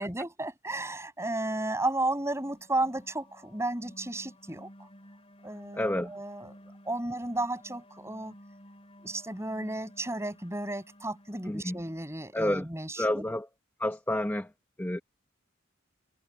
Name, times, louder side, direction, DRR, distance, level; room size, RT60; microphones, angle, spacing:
voice 1, 0.0-4.7 5.4-6.5 6.8-8.3 9.0-13.2, right 2 dB, 15° right, 6.4 m, -33 dB
sound 1, 2.0-12.5, equal, 30° left, 7.2 m, -54 dB
voice 2, 5.7-6.1 11.4-11.8 12.3-12.7 13.0-13.5 13.8-14.5 14.8-15.0, left 1 dB, 10° left, 0.9 m, -29 dB
head